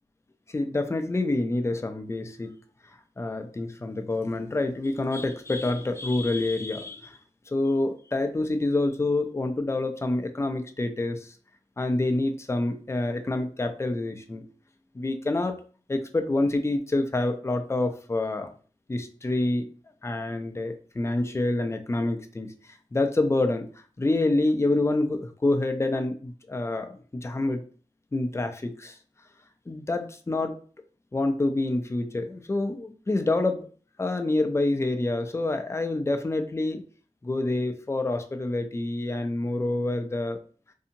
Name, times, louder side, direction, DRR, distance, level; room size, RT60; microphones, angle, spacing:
voice 1, 0.5-2.5 3.2-7.2 7.5-11.3 11.8-14.4 14.9-15.6 15.9-18.5 18.9-19.6 20.0-22.5 22.9-23.7 24.0-27.6 28.1-29.0 29.7-30.6 31.1-33.7 34.0-36.8 37.2-40.4, left 2 dB, 20° left, 7 dB, 0.4 m, -27 dB
2.7 x 2.6 x 2.6 m, 0.40 s
wide cardioid pair, 70°, 12 cm